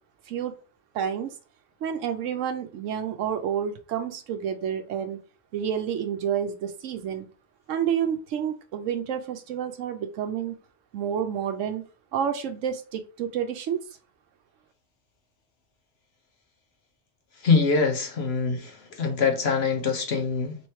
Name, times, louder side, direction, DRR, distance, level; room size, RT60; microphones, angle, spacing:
voice 1, 0.9-1.3 1.8-5.2 5.5-7.3 7.7-10.6 10.9-11.8 12.1-13.8, right 8 dB, 90° right, 1.0 m, -29 dB
voice 2, 17.4-20.6, left 4 dB, 60° left, 1.0 m, -24 dB
3.1 x 3.1 x 4.3 m
omnidirectional pair, 1.3 m